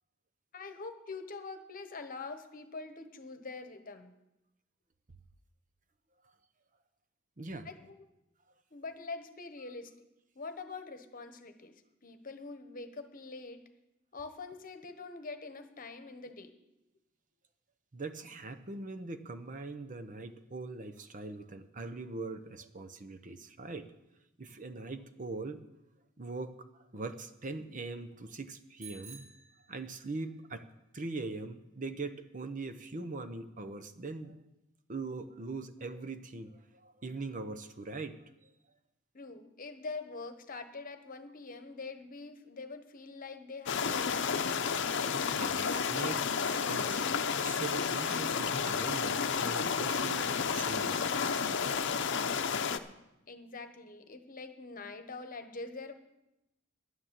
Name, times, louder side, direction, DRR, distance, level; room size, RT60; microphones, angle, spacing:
voice 1, 0.5-4.1 7.6-8.0 8.7-9.9 10.3-11.7 12.0-13.6 14.1-16.5 39.1-44.8 53.3-55.9, left 3 dB, 45° left, 8 dB, 1.1 m, -44 dB
voice 2, 7.4-7.7 17.9-23.9 24.4-25.6 26.2-26.6 26.9-29.2 29.7-30.6 30.9-34.3 34.9-38.2 45.3-47.0 47.4-51.3, right 3 dB, 40° right, 9 dB, 0.8 m, -41 dB
Bicycle bell, 28.8-30.3, right 6 dB, 60° right, 3.2 m, -53 dB
sound 1, 43.7-52.8, left 6 dB, 65° left, 0.7 m, -31 dB
11.0 x 9.6 x 7.5 m, 0.91 s
head